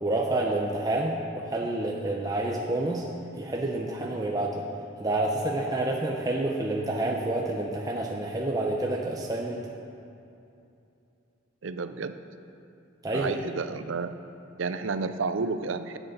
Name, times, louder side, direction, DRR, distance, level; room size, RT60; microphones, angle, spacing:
voice 1, 0.0-3.1 3.4-4.6 5.0-9.6 13.0-13.3, right 2 dB, 20° right, -1 dB, 0.7 m, -28 dB
voice 2, 11.6-12.1 13.1-14.1 14.6-16.0, right 4 dB, 75° right, 10 dB, 0.6 m, -31 dB
11.0 x 8.2 x 6.6 m, 2.7 s
head